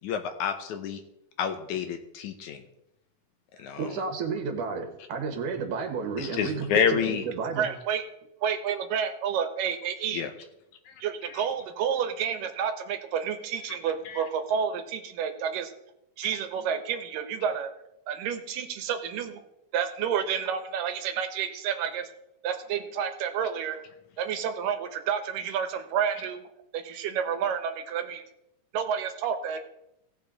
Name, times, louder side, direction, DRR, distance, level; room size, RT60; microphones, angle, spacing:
voice 1, 0.0-1.0 1.4-2.6 3.6-3.9 6.2-7.2 10.1-10.3 10.9-11.0 14.1-14.2, left 8 dB, 75° left, 7 dB, 2.1 m, -28 dB
voice 2, 3.8-7.7, right 5 dB, 70° right, 5 dB, 2.9 m, -31 dB
voice 3, 7.6-8.0 8.4-10.3 11.0-15.7 16.2-17.7 18.1-19.4 19.7-22.1 22.4-23.8 24.2-26.4 26.7-28.2 28.7-29.6, right 7 dB, 90° right, 8 dB, 2.7 m, -30 dB
17.0 x 6.8 x 4.0 m, 0.85 s
omnidirectional pair, 3.8 m